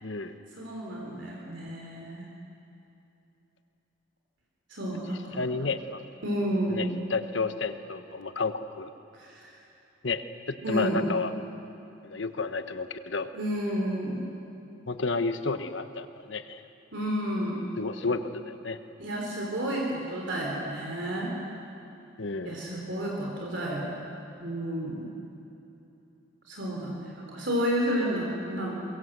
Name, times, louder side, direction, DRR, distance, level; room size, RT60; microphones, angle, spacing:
voice 1, 0.0-0.4 5.3-6.0 6.7-8.9 10.0-10.2 10.5-11.3 12.0-13.3 14.9-16.6 17.8-18.8 22.2-22.6, left 3 dB, 65° left, 9 dB, 1.2 m, -31 dB
voice 2, 0.6-2.3 4.7-5.5 6.2-6.9 9.1-9.5 10.6-11.1 13.3-14.3 16.9-17.7 19.0-21.4 22.4-24.0 24.4-25.2 26.5-28.7, equal, 60° right, -2 dB, 3.7 m, -31 dB
23.0 x 23.0 x 8.1 m, 2.8 s
head